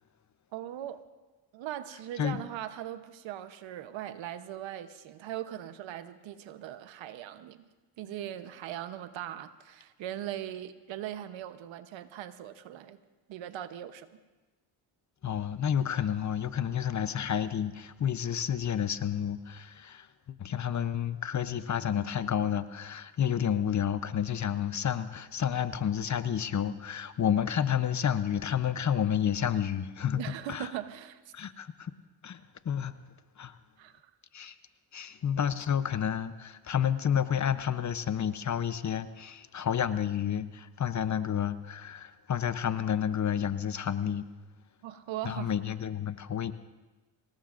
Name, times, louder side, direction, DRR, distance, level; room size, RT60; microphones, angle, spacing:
voice 1, 0.5-1.0 1.5-7.7 8.0-13.0 13.3-14.1 30.2-31.2 33.8-33.9 44.8-45.5, right 12 dB, 80° right, 1.0 m, -40 dB
voice 2, 15.2-30.2 30.5-30.7 31.3-31.9 32.2-32.9 33.4-33.6 34.3-34.6 34.9-44.3 45.2-46.5, left 9 dB, 40° left, 0.8 m, -30 dB
24.5 x 19.0 x 2.6 m
cardioid pair, 85°, 45 cm